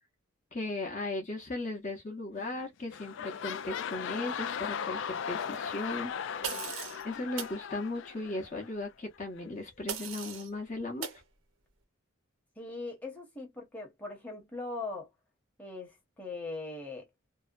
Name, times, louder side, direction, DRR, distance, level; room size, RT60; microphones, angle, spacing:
voice 1, 0.5-6.1 7.0-11.1, left 2 dB, 35° left, 0.7 m, -37 dB
sound 1, 2.3-2.6 2.9-8.7 9.4-9.5, left 7 dB, 65° left, 0.3 m, -38 dB
voice 2, 6.4-6.7 12.6-15.1 15.6-17.1, left 3 dB, 10° left, 0.9 m, -40 dB
sound 2, 6.4-7.0 7.4-7.6 9.9-10.5 11.0-11.2, right 7 dB, 80° right, 0.6 m, -38 dB
2.7 x 2.1 x 2.4 m
head